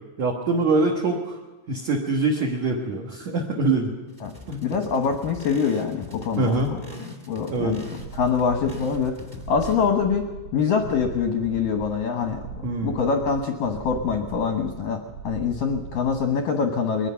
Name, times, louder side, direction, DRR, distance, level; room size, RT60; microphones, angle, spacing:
voice 1, 0.2-1.4 1.7-3.9 4.5-4.7 6.4-6.8 7.5-7.8 12.6-13.0, right 3 dB, 60° right, -1 dB, 2.0 m, -24 dB
sound 1, 4.1-9.8, left 3 dB, 15° right, 1.6 m, -41 dB
voice 2, 4.6-6.8 7.3-7.8 8.1-9.2 9.5-17.1, left 6 dB, 70° left, 3 dB, 2.1 m, -24 dB
sound 2, 7.9-16.4, right 6 dB, 75° right, 3.3 m, -40 dB
22.5 x 20.0 x 5.8 m, 1.2 s
omnidirectional pair, 5.7 m